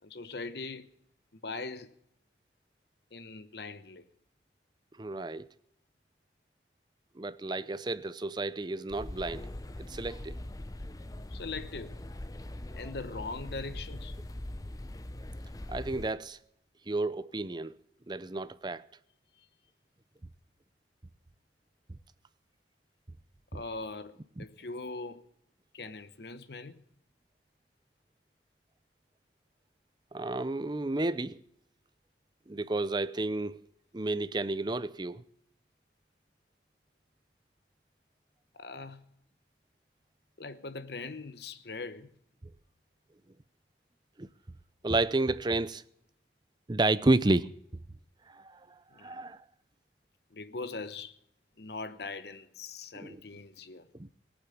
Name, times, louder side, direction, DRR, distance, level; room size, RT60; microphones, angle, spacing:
voice 1, 0.0-0.9 1.3-1.9 3.1-4.1 11.3-12.0 12.7-14.2 19.4-19.5 23.5-25.2 25.7-26.8 38.5-39.0 40.4-42.1 48.9-49.2 50.3-51.1 51.6-53.9, left 3 dB, 65° left, 1.0 m, -41 dB
voice 2, 5.0-5.5 7.2-9.5 9.9-10.4 15.7-16.4 16.9-17.7 18.1-18.8 23.5-23.6 24.4-24.5 30.1-31.4 32.5-33.6 33.9-35.2 44.2-44.3 44.8-45.8 46.7-47.5 48.3-48.6 49.0-49.4 53.0-53.2 54.0-54.1, right 2 dB, 25° right, 0.6 m, -31 dB
sound 1, 8.9-16.1, left 1 dB, 20° left, 0.6 m, -42 dB
18.5 x 8.9 x 7.0 m
head